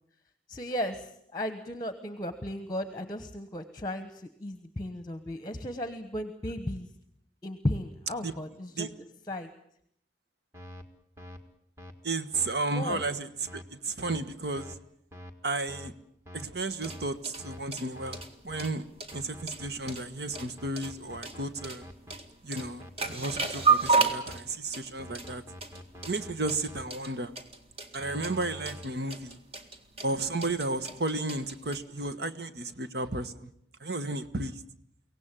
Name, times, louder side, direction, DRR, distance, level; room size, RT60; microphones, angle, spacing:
voice 1, 0.5-6.9 7.4-8.9 9.3-9.5 12.7-13.0, left 1 dB, 20° left, 9 dB, 1.1 m, -35 dB
sound 1, 10.5-10.8 11.2-11.4 11.8-11.9 12.3-12.5 12.9-13.1 13.5-13.6 14.0-14.2 14.6-14.8 15.1-15.3 15.7-15.9 16.3-16.4 16.8-17.0 17.4-17.6 18.0-18.2 18.5-18.7 19.1-19.9 20.3-22.1 22.5-24.4 25.0-26.8 28.0-28.8, left 1 dB, 15° right, 1.8 m, -45 dB
voice 2, 12.0-14.7 15.4-15.9 16.3-18.8 19.1-21.8 22.4-25.4 26.0-27.3 27.9-29.4 30.0-33.5 33.8-34.5, right 2 dB, 60° right, 11 dB, 1.3 m, -33 dB
sound 2, 16.6-31.8, right 4 dB, 30° right, 2.0 m, -33 dB
23.5 x 17.5 x 9.0 m, 0.72 s
head